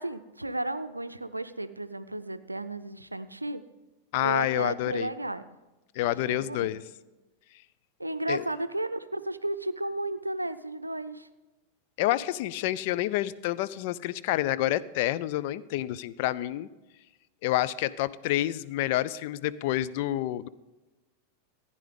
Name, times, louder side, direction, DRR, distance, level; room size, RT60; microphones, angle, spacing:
voice 1, 0.0-3.7 4.2-5.4 6.0-6.7 8.0-11.3, right 1 dB, 85° right, 12 dB, 0.5 m, -33 dB
voice 2, 4.1-5.1 6.0-6.8 8.3-8.4 12.0-16.7 17.4-20.5, left 14 dB, 50° left, 15 dB, 0.4 m, -28 dB
15.0 x 9.8 x 3.7 m, 1.1 s
figure-of-eight pair, 90°, 0 cm